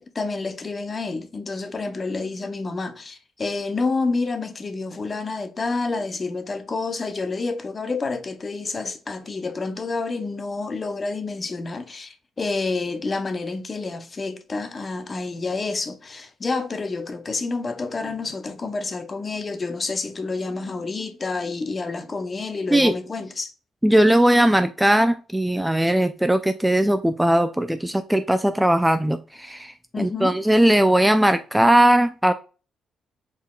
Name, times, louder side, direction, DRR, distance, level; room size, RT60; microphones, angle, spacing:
voice 1, 0.0-23.5 29.9-30.4, left 3 dB, 30° left, 0.7 m, -29 dB
voice 2, 23.8-32.3, right 1 dB, 5° right, 0.3 m, -19 dB
4.3 x 3.6 x 2.3 m
cardioid pair, 90°, 0 cm